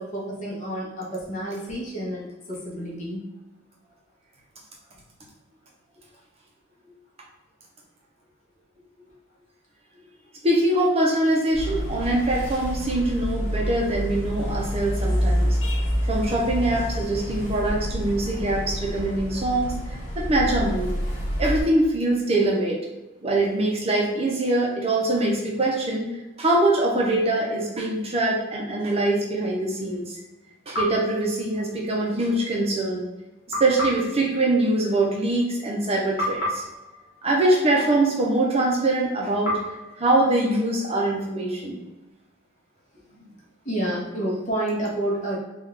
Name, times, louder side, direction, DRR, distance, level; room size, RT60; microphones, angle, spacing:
voice 1, 0.0-3.2 43.1-43.3 43.6-45.4, right 1 dB, 35° left, -3 dB, 0.9 m, -29 dB
voice 2, 10.4-15.5 16.1-20.9 21.4-22.8 23.2-26.1 26.4-30.0 30.7-33.0 33.6-36.6 37.2-39.6 40.0-41.8, right 2 dB, 30° right, -2 dB, 0.6 m, -23 dB
sound 1, 11.5-21.6, equal, 70° left, 1.0 m, -27 dB
sound 2, 30.7-32.1 33.5-35.8 36.2-38.5 39.4-41.3, left 1 dB, 55° left, 1.3 m, -34 dB
3.5 x 2.3 x 3.2 m, 1.1 s
head